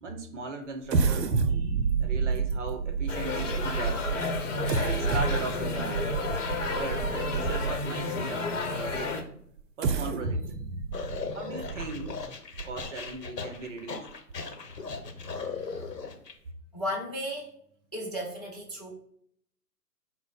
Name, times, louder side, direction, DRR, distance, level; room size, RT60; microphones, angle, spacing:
voice 1, 0.0-4.0 4.8-6.1 6.7-9.2 9.8-10.6 11.3-12.3 12.6-14.2, right 3 dB, 50° right, 6 dB, 0.7 m, -38 dB
sound 1, 0.9-8.0 8.6-8.7 9.6-13.1 13.6-13.7 14.1-14.3, right 5 dB, 85° right, 0.6 m, -30 dB
sound 2, 3.1-9.2, left 3 dB, 50° left, 0.8 m, -31 dB
sound 3, 10.9-16.3, left 5 dB, 80° left, 0.9 m, -38 dB
voice 2, 15.5-15.9 16.7-17.5 17.9-18.9, equal, 30° left, -1 dB, 0.3 m, -35 dB
4.5 x 2.0 x 4.0 m, 0.67 s
hypercardioid pair, 135°, 49 cm